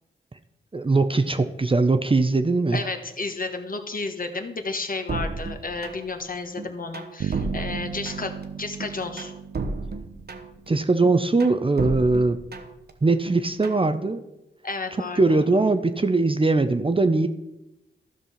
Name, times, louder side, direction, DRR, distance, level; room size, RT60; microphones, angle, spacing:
voice 1, 0.7-2.8 10.7-12.4 13.0-14.2 15.2-17.3, right 3 dB, 25° right, 9 dB, 0.7 m, -21 dB
voice 2, 2.7-8.3 8.6-9.3 14.6-15.4, left 3 dB, 45° left, 5 dB, 1.4 m, -32 dB
sound 1, 5.1-6.2 6.6-8.4 8.8-10.7 11.0-12.9 13.3-13.9, right 3 dB, 50° right, 1.0 m, -33 dB
sound 2, 7.2-10.9, right 7 dB, 70° right, 0.6 m, -35 dB
12.5 x 5.5 x 5.6 m, 0.93 s
cardioid pair, 50°, 21 cm